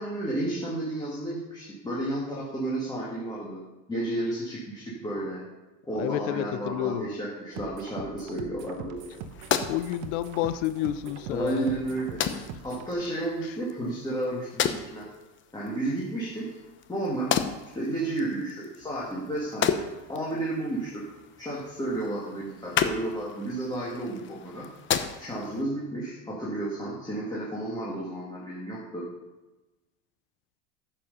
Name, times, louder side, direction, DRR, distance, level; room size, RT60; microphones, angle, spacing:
voice 1, 0.0-3.6 3.9-5.4 5.9-9.0 11.3-12.3 12.6-15.1 15.5-16.5 16.9-17.3 17.7-21.0 21.4-24.7 25.2-29.1, right 1 dB, 10° left, -6 dB, 2.2 m, -32 dB
voice 2, 6.0-7.1 9.7-11.8 12.3-12.4, left 12 dB, 75° left, 12 dB, 0.8 m, -30 dB
sound 1, 7.5-12.9, right 7 dB, 60° right, 1.1 m, -42 dB
sound 2, 9.0-25.6, left 8 dB, 30° left, 0.8 m, -34 dB
9.8 x 7.4 x 5.4 m, 1.1 s
supercardioid pair, 135°, 37 cm